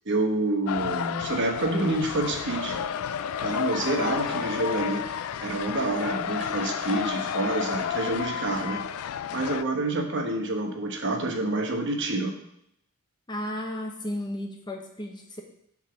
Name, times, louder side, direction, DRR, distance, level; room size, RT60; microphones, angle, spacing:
voice 1, 0.0-2.8 3.4-8.8 9.3-12.4, right 2 dB, 55° right, 3 dB, 1.1 m, -28 dB
sound 1, 0.7-9.6, left 8 dB, 80° left, 0.4 m, -31 dB
voice 2, 13.3-15.4, left 1 dB, 20° left, 2 dB, 0.9 m, -34 dB
8.2 x 3.8 x 5.8 m, 0.75 s
head